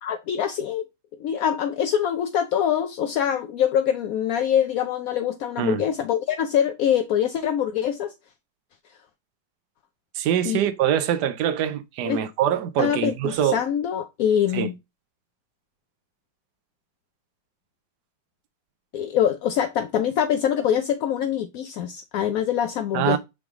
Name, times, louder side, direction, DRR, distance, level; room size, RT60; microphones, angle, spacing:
voice 1, 0.0-0.8 1.2-8.1 10.4-10.6 12.1-12.2 12.8-14.7 18.9-23.2, left 9 dB, 65° left, 0.9 m, -24 dB
voice 2, 10.1-13.6 14.5-14.7 22.9-23.2, right 10 dB, 70° right, 1.3 m, -24 dB
8.9 x 3.3 x 3.7 m
omnidirectional pair, 2.0 m